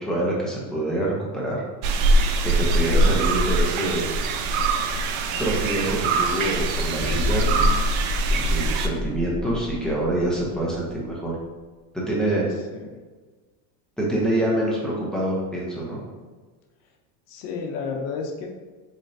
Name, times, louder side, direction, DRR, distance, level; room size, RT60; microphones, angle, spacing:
voice 1, 0.0-1.6 2.4-4.0 5.4-7.8 8.3-11.3 11.9-12.5 14.0-16.0, right 1 dB, ahead, -6 dB, 0.5 m, -26 dB
sound 1, 1.8-8.9, right 2 dB, 55° right, 0.5 m, -22 dB
sound 2, 6.9-11.1, left 2 dB, 20° left, 1.4 m, -29 dB
voice 2, 17.3-18.5, left 5 dB, 70° left, 2 dB, 0.8 m, -31 dB
3.7 x 3.2 x 2.6 m, 1.4 s
supercardioid pair, 135°, 49 cm